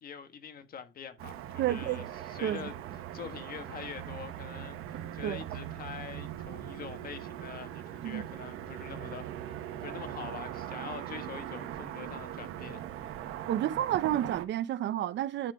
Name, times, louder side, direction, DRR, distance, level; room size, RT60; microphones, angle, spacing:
voice 1, 0.0-12.8, left 7 dB, 45° left, 1.3 m, -45 dB
Car passing by / Traffic noise roadway noise, 1.2-14.5, right 11 dB, 85° right, 1.0 m, -40 dB
voice 2, 1.6-2.0 2.4-2.7 5.2-5.4 8.0-8.2 13.5-15.5, right 12 dB, 60° right, 0.6 m, -30 dB
10.0 x 3.8 x 4.8 m
cardioid pair, 145°, 21 cm